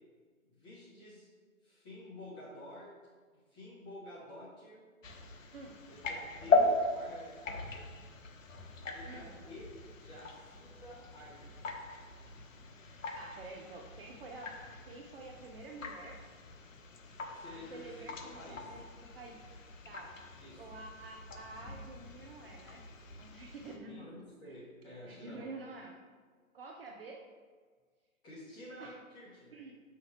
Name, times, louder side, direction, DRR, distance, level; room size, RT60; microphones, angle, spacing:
voice 1, 0.5-1.3 1.6-2.9 3.3-4.8 5.9-7.9 8.8-9.7 10.0-11.5 17.3-18.7 20.4-20.6 23.6-25.5 28.2-29.7, left 1 dB, 10° left, -7 dB, 0.8 m, -50 dB
sound 1, 5.0-23.8, left 3 dB, 65° left, 1.0 m, -38 dB
voice 2, 13.1-14.5 14.8-16.2 17.5-19.4 19.8-20.2 20.6-22.8 23.2-24.1 24.4-24.6 24.9-26.0 26.5-27.2 28.8-29.0 29.5-29.7, right 3 dB, 40° right, 1 dB, 0.7 m, -49 dB
7.5 x 5.8 x 3.0 m, 1.5 s
figure-of-eight pair, 135°, 42 cm